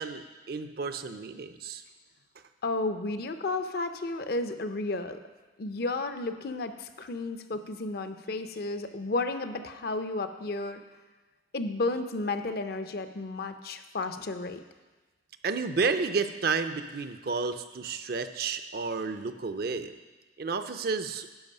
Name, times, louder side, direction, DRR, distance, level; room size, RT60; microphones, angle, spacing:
voice 1, 0.0-1.8 15.4-19.9 20.4-21.3, right 4 dB, 55° right, 9 dB, 0.5 m, -31 dB
voice 2, 2.6-5.2 5.6-10.8 11.5-14.6, left 2 dB, 55° left, 9 dB, 0.5 m, -32 dB
10.5 x 5.4 x 5.4 m, 1.2 s
head